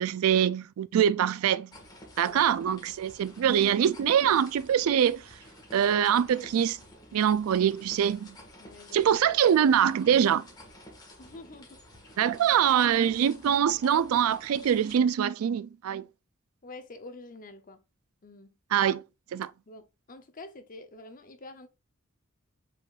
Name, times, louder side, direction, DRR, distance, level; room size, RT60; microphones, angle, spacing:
voice 1, 0.0-1.7 2.2-5.2 5.7-6.8 7.1-8.4 8.9-10.4 12.2-16.0 18.7-19.0 19.3-19.5, right 9 dB, 70° right, 0.3 m, -24 dB
sound 1, 1.7-15.0, left 1 dB, 20° left, 1.5 m, -51 dB
voice 2, 8.6-9.2 11.2-11.8 16.6-17.8 18.2-18.5 19.7-21.7, left 2 dB, 40° left, 0.7 m, -47 dB
5.5 x 3.8 x 2.4 m
head